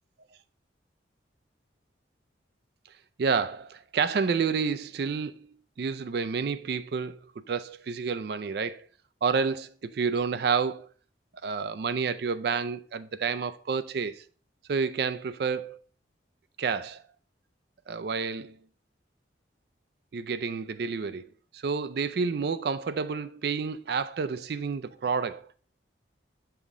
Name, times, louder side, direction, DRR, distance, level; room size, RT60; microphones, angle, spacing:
voice 1, 3.2-7.2 7.5-8.9 9.2-10.9 11.4-14.2 14.7-15.8 16.6-17.0 17.9-18.6 20.1-21.3 21.5-25.5, right 5 dB, 55° right, 0.4 m, -29 dB
8.1 x 5.7 x 3.6 m
head